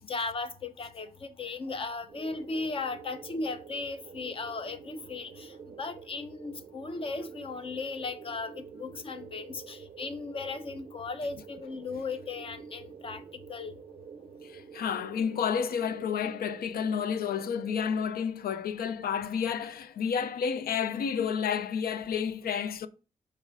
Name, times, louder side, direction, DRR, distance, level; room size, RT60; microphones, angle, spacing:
voice 1, 0.0-13.8, left 3 dB, 35° left, 0.7 m, -37 dB
sound 1, 2.1-18.1, right 6 dB, 45° right, 0.5 m, -48 dB
voice 2, 14.4-22.9, left 7 dB, 85° left, 0.5 m, -30 dB
4.8 x 4.3 x 5.4 m
wide cardioid pair, 155°, 15 cm